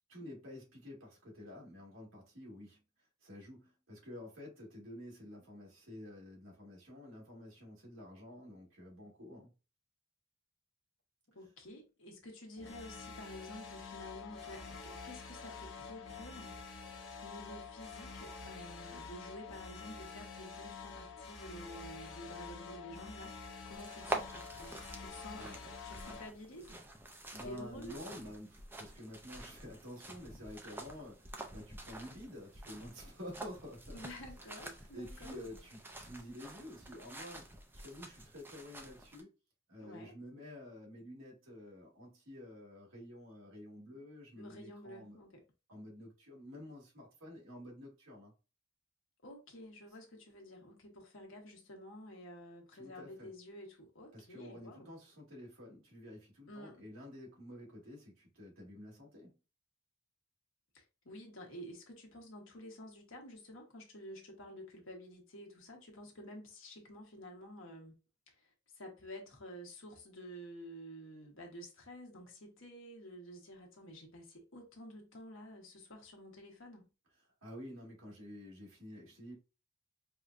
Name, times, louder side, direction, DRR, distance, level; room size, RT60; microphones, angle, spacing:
voice 1, 0.1-2.8 3.2-9.5 25.3-25.7 27.3-34.0 34.9-37.5 37.8-39.3 39.7-45.2 45.7-48.3 52.7-53.3 54.1-59.3 77.4-79.3, left 1 dB, 75° right, 1.8 m, -50 dB
voice 2, 11.3-16.6 17.2-23.4 23.7-26.8 27.4-28.0 33.9-35.4 39.8-40.1 44.4-45.4 49.2-54.9 56.5-56.8 60.7-67.9 68.3-76.9, equal, 75° left, 1.2 m, -51 dB
sound 1, 12.6-26.3, left 4 dB, 55° left, 0.8 m, -48 dB
sound 2, 23.7-39.2, right 2 dB, 10° right, 0.4 m, -47 dB
4.8 x 2.2 x 2.5 m
head